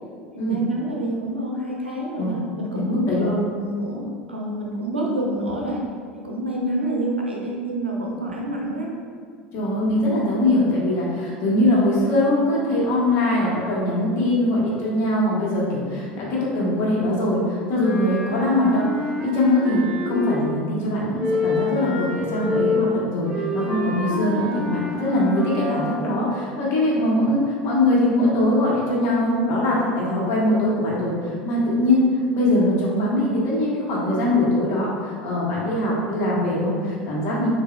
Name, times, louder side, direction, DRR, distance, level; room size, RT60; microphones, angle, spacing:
voice 1, 0.3-5.8 6.2-8.9, right 1 dB, 85° right, -2 dB, 0.6 m, -28 dB
voice 2, 2.7-3.3 9.5-32.0 32.3-37.5, left 1 dB, 50° left, -5 dB, 1.3 m, -22 dB
Wind instrument woodwind instrument, 17.7-20.6 21.2-26.0, left 3 dB, 15° right, 1.2 m, -27 dB
6.8 x 2.6 x 2.2 m, 2.1 s
figure-of-eight pair, 75°, 6 cm